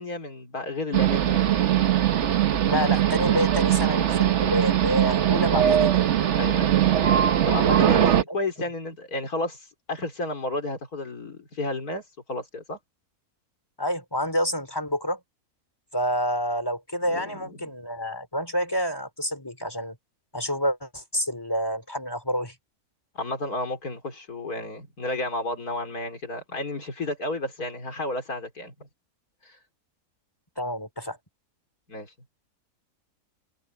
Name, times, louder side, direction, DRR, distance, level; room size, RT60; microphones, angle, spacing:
voice 1, 0.0-1.5 5.6-5.8 6.4-6.7 7.5-12.0 12.3-12.8 17.1-17.6 23.1-28.9 29.5-29.6 31.9-32.1, left 2 dB, 75° left, 4.4 m, -32 dB
sound 1, 0.9-8.2, right 10 dB, 55° right, 1.1 m, -21 dB
voice 2, 2.6-5.9 13.8-15.2 15.9-19.9 20.3-22.5 30.6-31.2, equal, 15° left, 2.9 m, -28 dB
omnidirectional pair, 1.6 m